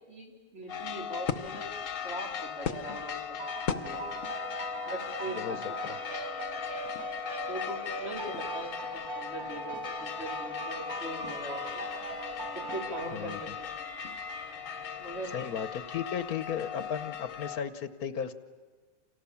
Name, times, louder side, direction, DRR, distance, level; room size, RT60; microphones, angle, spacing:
voice 1, 0.1-1.7 2.0-4.0 4.9-5.6 7.5-11.9 12.5-13.7 15.0-15.4, right 1 dB, 45° right, -1 dB, 4.4 m, -41 dB
sound 1, 0.7-17.6, left 8 dB, 60° left, 1.4 m, -38 dB
sound 2, 3.4-13.8, right 2 dB, 75° right, 2.2 m, -40 dB
voice 2, 5.3-6.0 13.1-13.4 15.3-18.3, left 8 dB, 75° left, 12 dB, 1.5 m, -35 dB
sound 3, 10.7-15.9, left 1 dB, 25° right, 7.0 m, -49 dB
29.5 x 28.0 x 7.2 m, 1.4 s
omnidirectional pair, 1.6 m